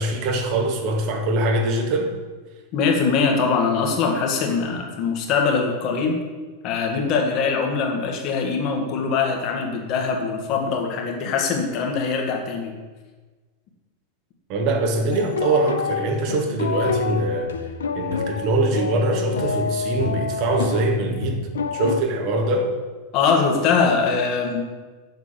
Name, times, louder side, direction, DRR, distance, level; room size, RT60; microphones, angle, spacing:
voice 1, 0.0-2.1 14.5-17.6 18.0-22.7, right 2 dB, 40° right, 3 dB, 1.9 m, -23 dB
voice 2, 2.7-6.2 6.6-12.7 23.1-24.6, left 5 dB, 40° left, 2 dB, 2.0 m, -22 dB
sound 1, 15.1-22.0, left 5 dB, 65° left, 0.6 m, -28 dB
7.5 x 7.0 x 8.0 m, 1.3 s
figure-of-eight pair, 90°, 0 cm